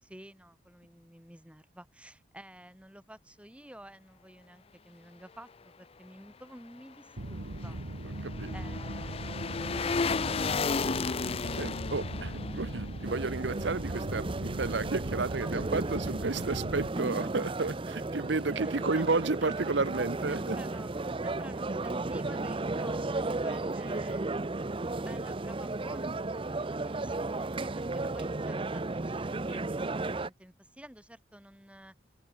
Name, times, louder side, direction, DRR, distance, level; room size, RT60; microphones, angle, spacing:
voice 1, 0.0-7.8 8.2-10.8 15.4-16.1 18.6-19.6 20.3-24.2 24.8-31.9, right 1 dB, 5° right, 4.1 m, -52 dB
sound 1, 7.2-14.4 14.7-14.8, left 4 dB, 30° left, 0.5 m, -34 dB
sound 2, 7.2-16.9, right 1 dB, 90° right, 1.7 m, -38 dB
voice 2, 8.2-8.5 11.6-20.6, right 3 dB, 65° right, 0.9 m, -32 dB
sound 3, 13.0-30.3, right 2 dB, 30° right, 0.6 m, -34 dB
open air
head